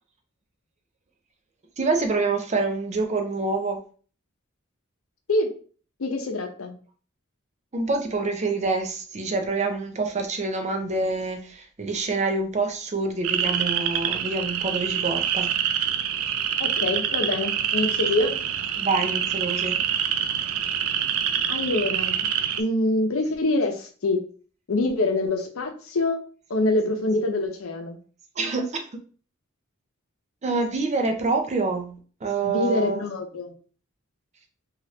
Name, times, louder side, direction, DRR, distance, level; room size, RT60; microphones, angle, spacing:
voice 1, 1.8-3.8 7.7-15.5 18.8-19.8 28.4-28.8 30.4-31.9 32.2-33.0, right 3 dB, 35° right, 4 dB, 0.5 m, -26 dB
voice 2, 6.0-6.7 16.6-18.3 21.5-22.3 22.6-24.2 24.7-26.2 26.5-28.0 32.4-33.5, left 2 dB, 80° left, 5 dB, 0.6 m, -25 dB
sound 1, 13.2-22.6, right 9 dB, 85° right, 0.4 m, -26 dB
2.8 x 2.4 x 3.1 m, 0.40 s
head